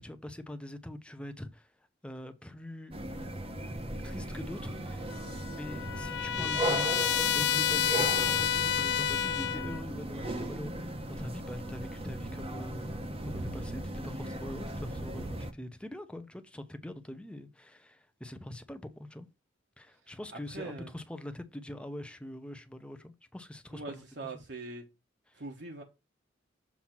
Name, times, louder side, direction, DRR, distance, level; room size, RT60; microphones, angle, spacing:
voice 1, 0.0-1.7 2.0-3.0 4.0-6.9 7.3-19.3 19.8-24.0 25.3-25.4, left 1 dB, 5° left, 0.7 m, -43 dB
sound 1, 2.9-15.5, right 1 dB, 30° right, 0.8 m, -37 dB
Trumpet, 5.1-9.8, left 10 dB, 65° left, 0.5 m, -30 dB
voice 2, 20.3-20.9 23.7-24.8 25.3-25.8, right 3 dB, 65° right, 1.2 m, -42 dB
7.3 x 2.8 x 5.9 m
head